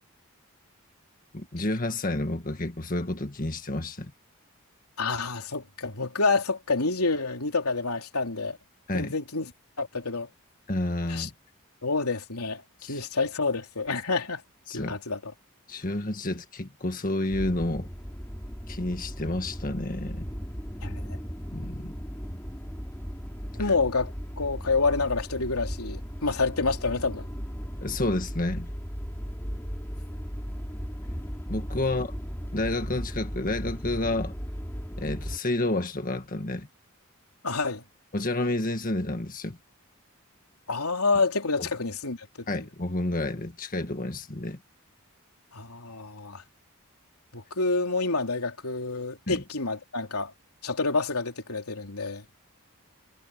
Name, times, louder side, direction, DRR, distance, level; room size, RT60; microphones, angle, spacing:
voice 1, 1.3-4.1 8.9-9.1 10.7-11.3 12.8-13.0 14.7-15.0 15.7-17.9 18.7-20.3 21.5-21.9 23.6-23.7 27.8-28.7 31.5-32.1 32.5-34.3 35.0-36.7 38.1-39.6 41.6-41.7 42.5-44.6 49.3-49.4, left 2 dB, 40° left, 1.8 m, -30 dB
voice 2, 5.0-8.6 8.9-9.5 9.8-10.3 11.1-11.3 11.8-12.6 12.9-14.4 14.7-15.3 20.8-21.0 23.6-24.1 24.4-27.3 37.4-37.8 40.7-42.5 45.5-46.4 47.3-50.3 50.6-52.2, left 3 dB, 90° left, 3.5 m, -28 dB
sound 1, 17.3-35.4, equal, 10° left, 4.6 m, -36 dB
head